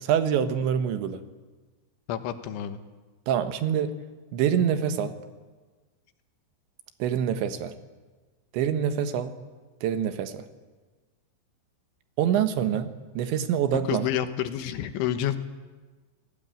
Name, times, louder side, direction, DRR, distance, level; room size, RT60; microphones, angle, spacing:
voice 1, 0.0-1.2 3.3-4.1 4.3-5.2 7.0-7.7 8.5-9.4 9.8-10.5 12.2-14.1, right 9 dB, 75° right, 9 dB, 3.6 m, -26 dB
voice 2, 2.1-2.8 13.9-15.4, left 11 dB, 85° left, 9 dB, 3.8 m, -29 dB
29.5 x 18.5 x 9.0 m, 1.3 s
omnidirectional pair, 5.3 m